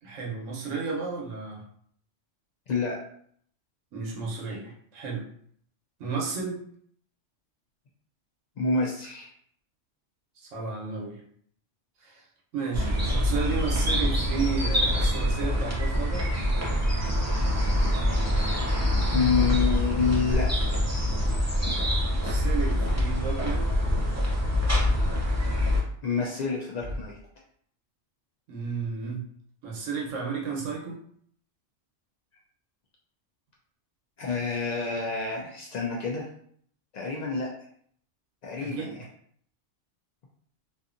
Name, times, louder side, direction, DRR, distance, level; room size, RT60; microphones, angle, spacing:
voice 1, 0.0-1.6 3.9-5.2 6.0-6.7 10.4-11.2 12.0-12.2 12.5-16.3 22.0-23.7 28.5-29.2 29.6-31.0 38.6-39.0, right 5 dB, 80° right, -2 dB, 1.1 m, -33 dB
voice 2, 2.7-3.0 8.6-9.3 19.1-20.5 26.0-27.2 34.2-36.3 36.9-37.5 38.4-39.0, left 5 dB, 80° left, -3 dB, 0.3 m, -28 dB
sound 1, 12.7-25.8, left 1 dB, 25° right, 0.3 m, -25 dB
Thump thud, 26.8-27.3, equal, 60° right, 0.7 m, -39 dB
2.7 x 2.4 x 2.4 m, 0.62 s
omnidirectional pair, 1.3 m